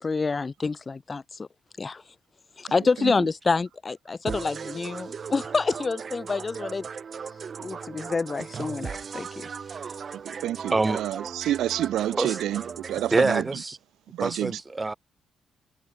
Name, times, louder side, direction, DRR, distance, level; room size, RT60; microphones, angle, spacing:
voice 1, 0.0-1.5 1.8-2.0 2.6-6.9 7.6-9.5, left 4 dB, 35° left, 1.9 m, -27 dB
sound 1, 4.3-13.4, right 6 dB, 50° right, 3.3 m, -37 dB
voice 2, 10.1-13.4 14.1-14.6, right 13 dB, 85° right, 2.5 m, -29 dB
voice 3, 10.7-11.0 12.2-12.4 13.1-13.8 14.2-14.9, right 3 dB, 25° right, 6.1 m, -25 dB
cardioid pair, 70°, 0 cm